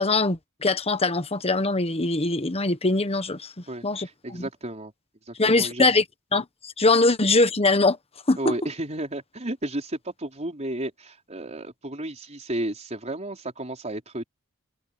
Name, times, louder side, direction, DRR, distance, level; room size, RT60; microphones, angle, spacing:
voice 1, 0.0-3.5 3.8-4.4 5.4-6.0 6.3-8.0 8.3-8.6, left 3 dB, 30° left, 1.3 m, -22 dB
voice 2, 3.7-4.9 5.3-5.9 8.4-14.2, right 1 dB, 30° right, 4.7 m, -33 dB
head